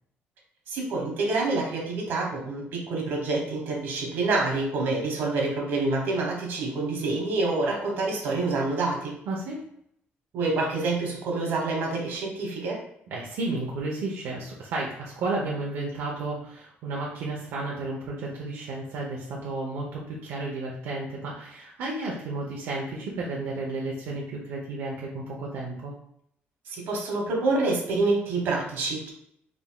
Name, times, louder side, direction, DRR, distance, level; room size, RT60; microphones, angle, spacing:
voice 1, 0.7-9.2 10.3-12.8 26.7-29.1, right 3 dB, 65° right, 0 dB, 1.1 m, -27 dB
voice 2, 9.3-9.6 13.1-25.9, right 2 dB, 85° right, -3 dB, 0.7 m, -32 dB
3.7 x 3.5 x 2.2 m, 0.72 s
cardioid pair, 175°, 4 cm